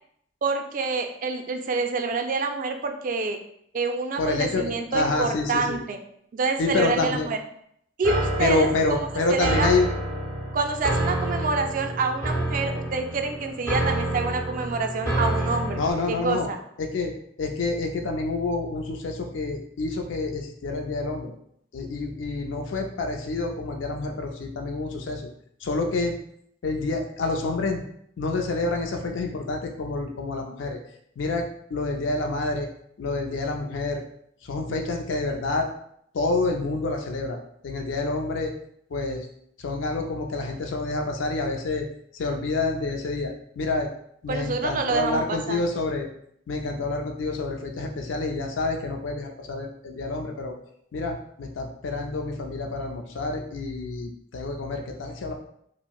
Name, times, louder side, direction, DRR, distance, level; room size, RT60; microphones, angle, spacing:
voice 1, 0.4-3.4 3.7-6.0 6.3-7.4 8.0-9.0 9.3-9.7 10.5-15.8 16.1-16.6 44.3-45.6, right 4 dB, 45° right, 6 dB, 0.3 m, -27 dB
voice 2, 4.2-5.8 6.6-7.3 8.4-9.9 15.7-16.5 16.8-17.1 17.4-21.3 21.7-25.3 25.6-26.2 26.6-27.8 28.2-30.8 31.2-32.7 33.0-34.0 34.4-35.7 36.1-37.4 37.6-38.5 38.9-39.3 39.6-41.9 42.1-43.9 44.2-46.1 46.5-50.5 50.9-55.3, left 3 dB, 75° left, 3 dB, 0.4 m, -28 dB
sound 1, 8.0-15.9, right 1 dB, 15° left, 0.6 m, -28 dB
4.4 x 2.0 x 2.3 m, 0.69 s
head